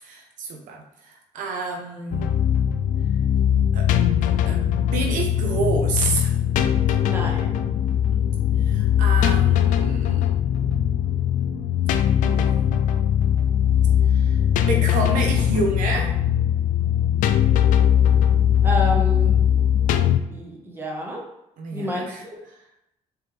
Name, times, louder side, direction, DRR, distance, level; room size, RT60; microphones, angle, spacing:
voice 1, 0.0-2.4 3.7-3.9 4.2-4.6 4.9-6.3 8.6-10.3 11.9-12.0 12.2-12.5 14.1-14.4 14.7-16.1 21.6-22.2, right 3 dB, 80° right, 1 dB, 0.9 m, -29 dB
sound 1, 2.1-20.2, left 9 dB, 80° left, 0.4 m, -20 dB
voice 2, 7.0-7.5 18.6-19.4 20.3-21.2 21.7-22.4, left 1 dB, 15° right, -2 dB, 1.3 m, -29 dB
4.4 x 3.5 x 3.4 m, 0.84 s
cardioid pair, 100°, 13 cm